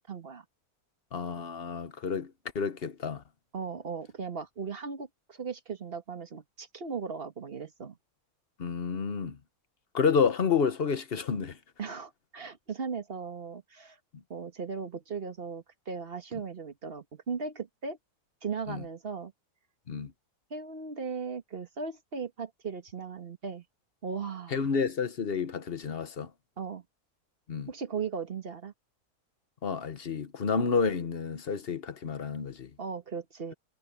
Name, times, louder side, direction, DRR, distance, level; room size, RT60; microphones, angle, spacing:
voice 1, 0.1-0.4 3.5-8.0 11.8-14.0 14.3-18.0 18.4-19.3 20.5-23.6 24.0-24.6 26.6-26.8 27.7-28.7 32.8-33.5, right 5 dB, 40° right, 1.7 m, -37 dB
voice 2, 1.1-3.2 8.6-9.4 9.9-11.6 18.7-18.8 19.9-20.1 24.5-26.3 27.5-27.7 29.6-32.7, left 5 dB, 40° left, 1.2 m, -30 dB
omnidirectional pair, 1.6 m